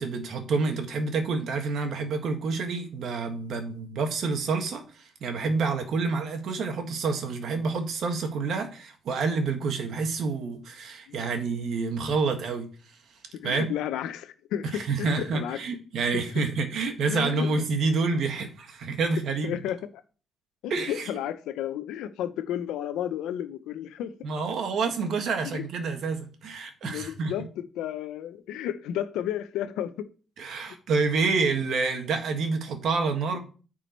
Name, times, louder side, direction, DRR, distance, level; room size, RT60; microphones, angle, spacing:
voice 1, 0.0-12.7 13.4-13.7 14.7-19.6 20.7-21.1 24.2-27.3 30.4-33.4, right 4 dB, 70° right, 1.8 m, -28 dB
voice 2, 13.3-15.6 17.1-17.5 19.4-19.8 20.6-24.1 25.5-25.6 26.8-30.1 30.7-30.8 33.3-33.4, left 10 dB, 90° left, 0.8 m, -32 dB
9.3 x 4.8 x 4.6 m
cardioid pair, 90°, 0 cm